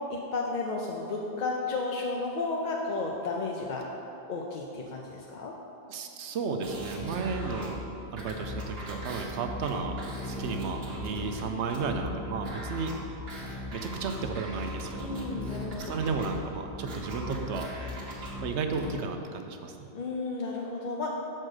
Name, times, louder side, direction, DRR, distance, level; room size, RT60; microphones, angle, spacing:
voice 1, 0.1-3.9 4.3-5.5 15.0-15.9 19.9-21.2, left 3 dB, 55° left, -1 dB, 0.6 m, -33 dB
voice 2, 5.9-7.8 8.1-10.0 10.2-12.9 13.7-15.1 15.7-17.7 18.0-19.7, right 5 dB, 85° right, 5 dB, 0.9 m, -33 dB
sound 1, 6.6-18.9, left 1 dB, 65° right, 1.3 m, -38 dB
6.0 x 4.4 x 6.4 m, 3.0 s
omnidirectional pair, 1.1 m